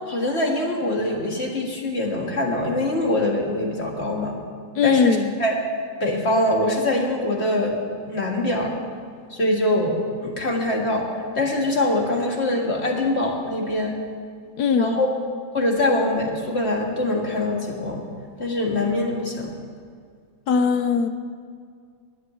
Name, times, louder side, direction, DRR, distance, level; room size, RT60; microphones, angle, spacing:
voice 1, 0.1-4.3 4.8-5.6 6.0-8.7 9.3-11.1 11.3-14.0 14.8-15.1 15.5-18.0 18.4-19.5, left 1 dB, 35° left, 0 dB, 1.9 m, -23 dB
voice 2, 4.8-5.3 14.6-15.0 20.5-21.1, left 5 dB, 70° left, 9 dB, 1.0 m, -20 dB
11.5 x 9.5 x 7.7 m, 2.2 s
omnidirectional pair, 2.0 m